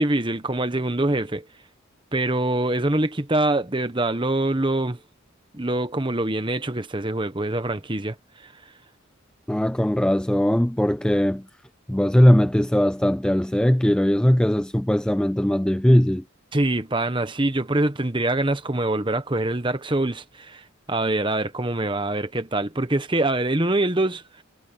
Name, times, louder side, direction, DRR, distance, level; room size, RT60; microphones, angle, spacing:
voice 1, 0.0-1.4 2.1-5.0 5.5-8.1 16.5-20.6 20.9-24.2, right 2 dB, 20° right, 1.2 m, -24 dB
voice 2, 9.5-11.5 11.9-16.2, equal, 5° left, 0.3 m, -19 dB
head